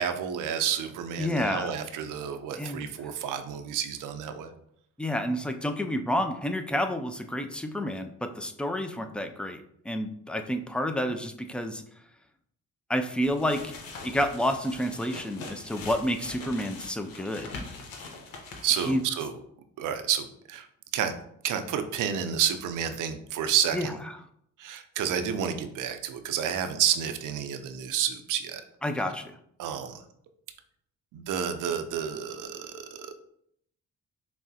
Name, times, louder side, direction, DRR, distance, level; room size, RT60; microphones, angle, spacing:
voice 1, 0.0-4.5 18.6-19.4 19.8-20.7 20.9-21.1 21.4-23.9 24.6-28.6 29.6-30.0 31.1-33.1, right 9 dB, 70° right, 8 dB, 0.5 m, -30 dB
voice 2, 1.2-1.7 2.6-2.8 5.0-11.8 12.9-13.7 14.0-17.5 18.9-19.0 23.7-23.9 28.8-29.3, equal, 5° left, 7 dB, 0.3 m, -29 dB
sound 1, 13.2-19.2, left 3 dB, 85° left, 0.9 m, -43 dB
5.9 x 2.1 x 2.8 m, 0.70 s
supercardioid pair, 70°, 32 cm